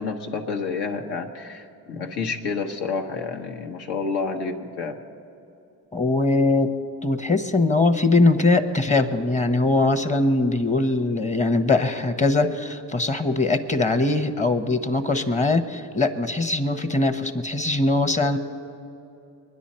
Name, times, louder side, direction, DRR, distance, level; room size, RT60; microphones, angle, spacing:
voice 1, 0.0-5.0, left 4 dB, 80° left, 3 dB, 1.3 m, -29 dB
voice 2, 5.9-6.7 7.0-18.4, left 2 dB, 20° left, 8 dB, 0.8 m, -21 dB
23.0 x 10.0 x 4.3 m, 2.7 s
cardioid pair, 95°, 40 cm